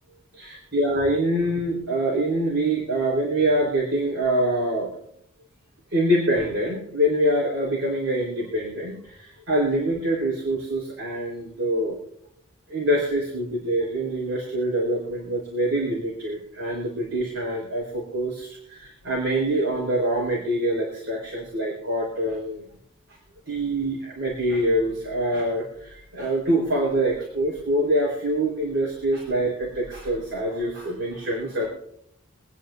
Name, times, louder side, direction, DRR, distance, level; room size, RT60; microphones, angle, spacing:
voice 1, 0.3-4.9 5.9-12.0 12.7-22.7 23.5-31.7, right 1 dB, 60° right, -4 dB, 4.0 m, -25 dB
25.5 x 9.6 x 2.6 m, 0.75 s
head